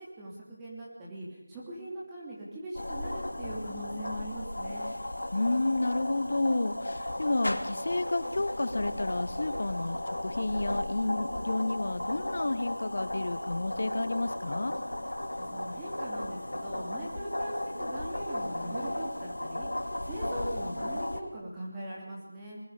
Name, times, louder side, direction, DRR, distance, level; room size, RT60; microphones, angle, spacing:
voice 1, 0.0-4.9 15.4-19.7 20.0-22.6, right 1 dB, 10° right, -6 dB, 3.3 m, -41 dB
sound 1, 2.7-21.2, left 1 dB, 70° left, 2.3 m, -35 dB
voice 2, 5.3-14.7, left 2 dB, 50° left, 13 dB, 1.2 m, -31 dB
26.5 x 21.0 x 5.2 m, 0.83 s
figure-of-eight pair, 170°, 0 cm